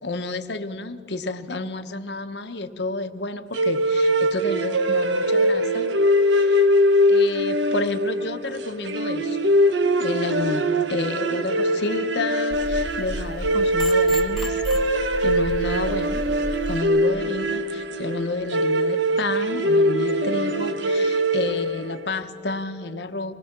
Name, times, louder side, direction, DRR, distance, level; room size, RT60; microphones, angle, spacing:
voice 1, 0.0-5.9 6.3-6.7 7.1-9.5 10.0-14.6 14.9-16.3 16.7-23.3, left 2 dB, 70° left, 8 dB, 1.1 m, -30 dB
sound 1, 3.5-22.0, equal, 85° right, 1.0 m, -22 dB
sound 2, 12.5-16.8, left 1 dB, ahead, 1.3 m, -33 dB
26.0 x 20.0 x 6.0 m, 2.3 s
head